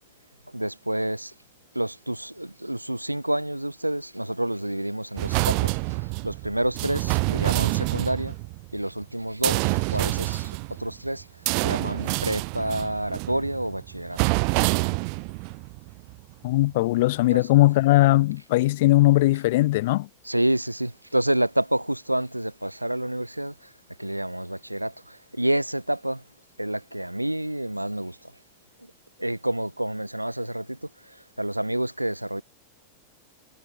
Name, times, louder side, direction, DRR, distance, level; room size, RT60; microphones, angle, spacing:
voice 1, 0.5-1.3 1.7-8.4 8.7-14.2 17.3-17.5 20.2-23.7 24.0-26.3 26.6-28.3 28.8-28.9 29.2-32.4, right 1 dB, 85° right, 0.7 m, -29 dB
sound 1, 5.2-9.0 9.4-16.1 16.6-16.7, right 40 dB or more, 45° right, 0.9 m, -27 dB
voice 2, 16.4-20.1, left 18 dB, 50° left, 1.3 m, -19 dB
figure-of-eight pair, 90°, 0 cm